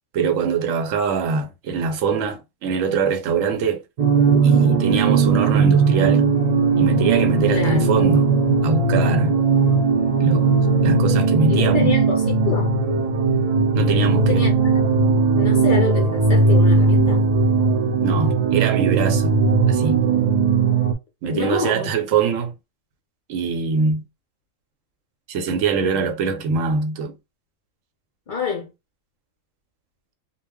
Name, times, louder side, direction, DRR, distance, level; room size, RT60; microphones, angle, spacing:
voice 1, 0.1-3.8 4.4-6.2 6.8-8.3 8.6-9.4 10.2-11.9 13.7-14.5 18.0-19.4 19.7-20.0 21.2-22.5 23.3-24.0 25.3-27.2, right 5 dB, 85° right, 1.0 m, -23 dB
sound 1, 4.0-20.9, right 4 dB, 65° right, 0.4 m, -18 dB
voice 2, 7.5-7.9 11.5-12.8 14.1-14.8 15.3-17.2 21.3-21.9 28.3-28.7, left 5 dB, 50° left, 0.6 m, -27 dB
2.3 x 2.0 x 3.4 m
omnidirectional pair, 1.3 m